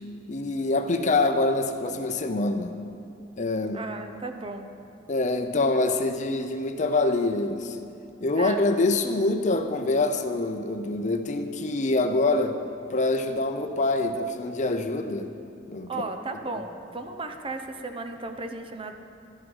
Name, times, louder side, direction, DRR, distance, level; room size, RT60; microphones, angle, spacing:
voice 1, 0.3-2.7 3.4-3.8 5.1-7.8 8.2-12.6 12.9-15.3 15.7-16.1, left 2 dB, 40° left, 7 dB, 0.6 m, -25 dB
voice 2, 3.7-4.7 8.3-8.6 15.9-18.9, right 3 dB, 30° right, 6 dB, 0.8 m, -35 dB
12.5 x 11.0 x 5.5 m, 2.7 s
head